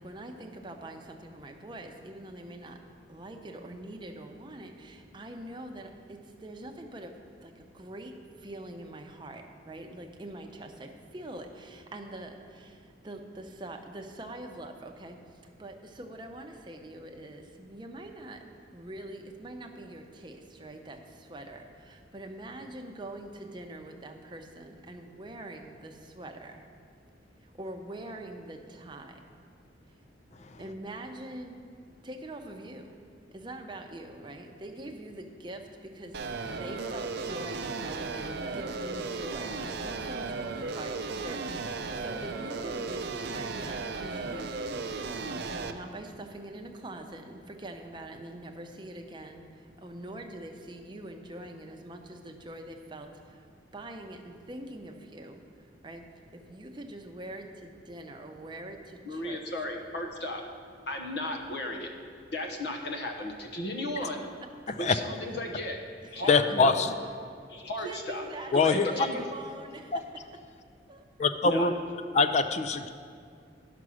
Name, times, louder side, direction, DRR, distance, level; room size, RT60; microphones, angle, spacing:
voice 1, 0.0-2.8 3.1-7.1 7.4-15.2 15.6-18.4 18.7-26.7 27.4-29.2 30.6-31.6 32.0-33.0 33.3-45.2 45.4-53.5 53.7-55.4 55.8-56.0 56.3-59.4 64.4-64.7 66.2-66.3 67.8-70.1 70.9-71.0, right 1 dB, 25° right, 4 dB, 0.7 m, -44 dB
sound 1, 36.1-45.7, right 3 dB, 65° right, 0.6 m, -35 dB
voice 2, 59.0-60.4 60.9-61.9 62.3-64.2 64.8-65.8 66.1-66.8 67.5-68.2 68.5-69.3 71.4-71.7, left 1 dB, 60° left, 3 dB, 1.1 m, -35 dB
voice 3, 64.7-65.0 66.3-66.9 68.5-69.1 69.9-70.0 71.2-71.7 72.1-72.9, left 4 dB, 40° left, 10 dB, 0.4 m, -24 dB
10.5 x 6.0 x 6.2 m, 2.2 s
head